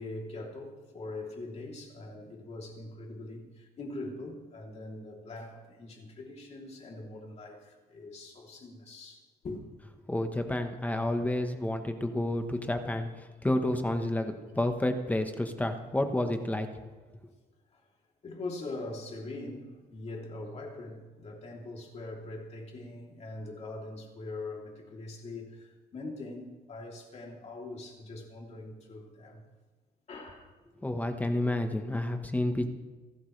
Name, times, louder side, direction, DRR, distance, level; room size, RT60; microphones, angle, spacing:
voice 1, 0.0-9.6 17.7-17.8 18.2-29.4 30.1-30.5, left 2 dB, 40° left, 0 dB, 3.2 m, -42 dB
voice 2, 10.1-13.1 13.4-16.7 30.8-32.7, left 1 dB, 10° left, 6 dB, 1.1 m, -30 dB
26.5 x 12.5 x 3.3 m, 1.3 s
cardioid pair, 140°, 16 cm